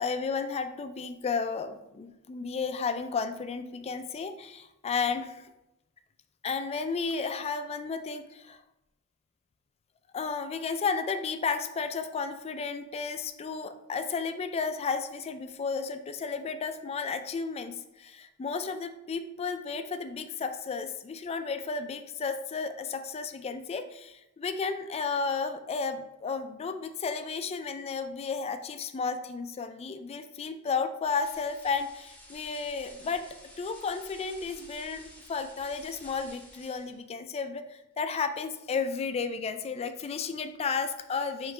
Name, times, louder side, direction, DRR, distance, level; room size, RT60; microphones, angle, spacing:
voice 1, 0.0-5.5 6.4-8.6 10.1-33.2 33.6-41.5, left 5 dB, 30° left, 9 dB, 0.3 m, -33 dB
sound 1, 31.1-37.0, left 1 dB, 10° left, 0.7 m, -52 dB
4.9 x 3.2 x 3.2 m, 0.93 s
head